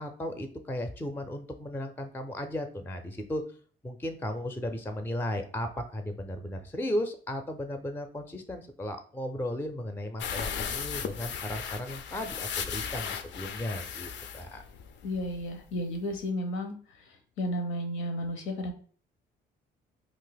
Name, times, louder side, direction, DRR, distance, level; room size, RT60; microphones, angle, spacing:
voice 1, 0.0-3.4 3.8-14.6, left 1 dB, 10° left, 7 dB, 0.5 m, -35 dB
sound 1, 10.2-15.5 15.8-15.9 16.2-16.3, left 7 dB, 65° left, 0.4 m, -36 dB
voice 2, 15.0-16.7 17.4-18.7, equal, 90° left, 5 dB, 0.8 m, -32 dB
2.7 x 2.5 x 3.9 m, 0.44 s
cardioid pair, 90°, 20 cm